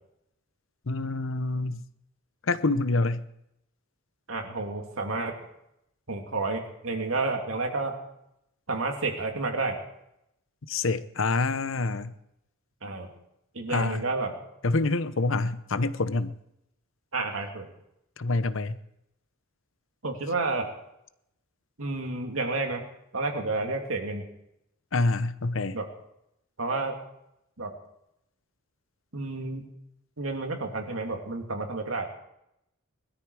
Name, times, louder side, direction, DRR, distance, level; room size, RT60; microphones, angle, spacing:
voice 1, 0.9-1.8 2.4-3.2 10.7-12.1 13.7-14.0 14.6-16.3 18.2-18.8 24.9-25.8, left 3 dB, 65° left, 14 dB, 0.8 m, -26 dB
voice 2, 4.3-5.3 6.1-7.9 8.7-9.8 12.8-13.1 13.5-14.3 17.1-17.7 20.0-20.7 21.8-22.8 23.1-24.2 25.7-25.8 26.6-27.0 27.6-27.7 29.1-29.7 30.2-32.1, right 3 dB, 75° right, 2 dB, 2.7 m, -30 dB
20.5 x 13.0 x 4.8 m, 0.82 s
head